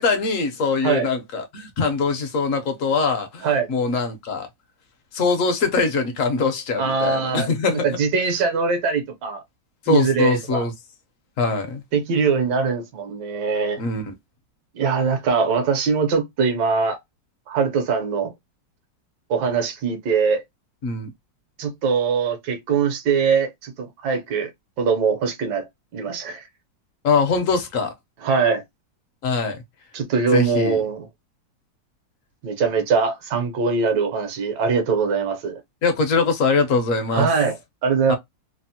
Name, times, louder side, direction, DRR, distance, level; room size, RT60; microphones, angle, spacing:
voice 1, 0.0-4.5 5.1-7.8 9.8-10.7 11.4-11.8 13.8-14.1 20.8-21.1 27.0-27.9 29.2-29.6 30.3-30.8 35.8-37.3 38.1-38.2, left 4 dB, 60° left, 0.9 m, -22 dB
voice 2, 6.8-9.4 9.9-10.6 11.9-13.8 14.7-17.0 17.5-18.3 19.3-20.4 21.6-24.5 24.8-26.5 28.2-28.6 29.9-31.1 32.4-35.6 37.1-38.2, right 5 dB, 75° right, 1.3 m, -22 dB
3.3 x 2.0 x 2.6 m
omnidirectional pair, 2.0 m